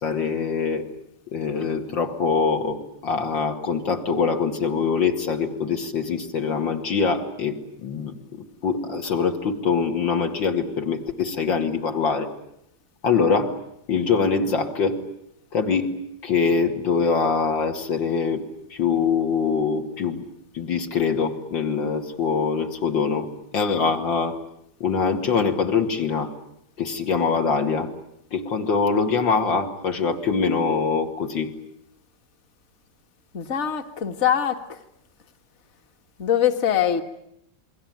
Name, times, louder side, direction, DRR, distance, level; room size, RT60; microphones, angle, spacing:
voice 1, 0.0-0.9 1.3-12.3 13.0-13.6 13.9-15.0 15.5-18.4 18.8-20.2 20.5-23.3 23.5-24.4 24.8-26.3 26.8-27.9 28.3-31.5, left 5 dB, 70° left, 4 dB, 3.0 m, -23 dB
voice 2, 33.3-34.8 36.2-37.0, left 9 dB, 35° left, 7 dB, 1.7 m, -23 dB
29.0 x 22.0 x 9.2 m, 0.76 s
omnidirectional pair, 2.1 m